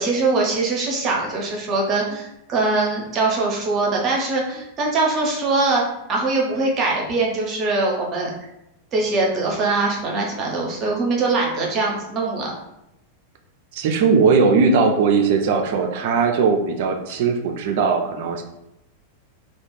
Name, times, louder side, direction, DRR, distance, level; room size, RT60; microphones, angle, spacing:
voice 1, 0.0-5.8 6.1-8.5 8.9-12.5, right 3 dB, 30° right, -2 dB, 0.7 m, -22 dB
voice 2, 13.7-18.4, right 5 dB, 50° right, 4 dB, 0.3 m, -19 dB
2.3 x 2.0 x 3.1 m, 0.87 s
figure-of-eight pair, 90°, 0 cm